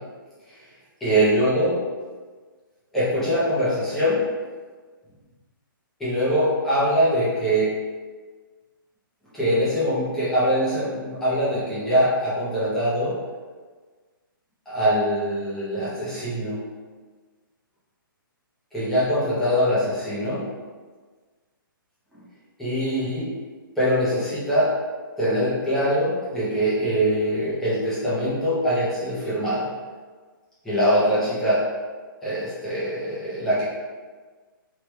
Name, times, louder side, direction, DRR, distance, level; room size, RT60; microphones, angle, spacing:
voice 1, 1.0-1.8 2.9-4.2 6.0-7.8 9.3-13.2 14.7-16.6 18.7-20.5 22.6-23.3 23.8-24.8 25.2-29.7 30.6-31.7 32.2-33.6, equal, ahead, -12 dB, 0.4 m, -23 dB
3.0 x 2.1 x 3.2 m, 1.4 s
hypercardioid pair, 175°, 12 cm